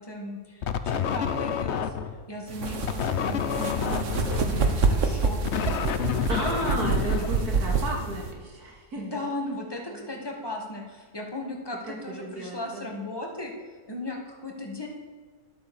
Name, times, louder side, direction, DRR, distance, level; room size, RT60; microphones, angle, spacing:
voice 1, 0.0-1.9 2.3-5.9 9.0-13.5 13.9-14.9, left 2 dB, 15° left, 0 dB, 2.0 m, -36 dB
sound 1, 0.6-2.2 2.8-8.0, left 8 dB, 55° left, 0.9 m, -29 dB
sound 2, 2.5-8.3, right 4 dB, 55° right, 1.4 m, -27 dB
voice 2, 6.3-9.3 9.9-10.1 11.9-12.8, right 1 dB, 80° right, 0 dB, 3.1 m, -33 dB
11.5 x 8.8 x 7.1 m, 1.5 s
omnidirectional pair, 1.6 m